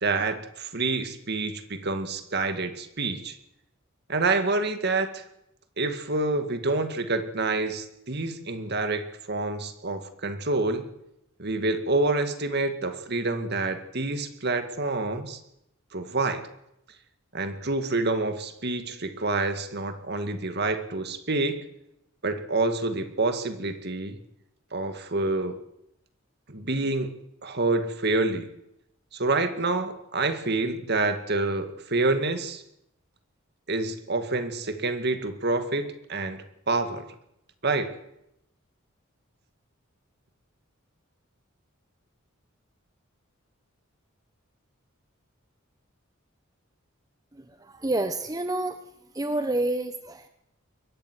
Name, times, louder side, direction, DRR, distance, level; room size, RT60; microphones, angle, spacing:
voice 1, 0.0-3.4 4.1-5.2 5.8-10.9 11.4-15.4 15.9-16.4 17.3-21.6 22.2-24.2 24.7-25.6 26.5-27.1 27.4-28.5 29.1-32.6 33.7-37.0 37.6-37.9, right 3 dB, 50° right, 8 dB, 2.0 m, -27 dB
voice 2, 47.3-48.8 49.1-50.3, right 2 dB, 15° right, 8 dB, 0.9 m, -29 dB
22.5 x 12.5 x 9.8 m, 0.82 s
head